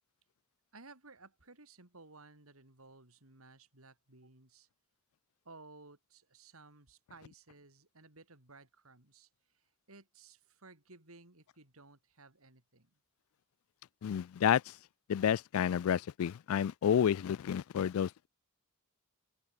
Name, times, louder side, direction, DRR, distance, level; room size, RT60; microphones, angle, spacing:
voice 1, 0.7-4.7 5.4-9.3 9.5-12.9, right 3 dB, 85° right, 4.3 m, -57 dB
voice 2, 14.0-14.6 15.1-18.3, left 8 dB, 75° left, 0.3 m, -30 dB
open air
head